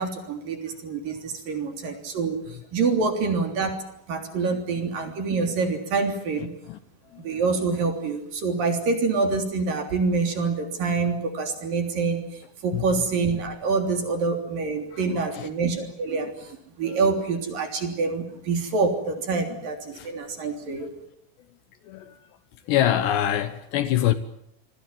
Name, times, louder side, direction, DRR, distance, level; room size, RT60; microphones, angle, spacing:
voice 1, 0.0-2.4 2.7-3.8 4.1-6.5 7.2-12.2 12.6-20.9, right 4 dB, 50° right, 4.6 m, -26 dB
voice 2, 4.3-4.6 6.4-6.8 7.1-7.4 12.7-13.0 14.9-15.5 16.2-16.3 16.8-17.2 19.9-20.1 20.8-20.9 21.8-22.3 22.7-24.2, left 12 dB, 70° left, 3.0 m, -27 dB
28.5 x 21.5 x 7.5 m
omnidirectional pair, 5.7 m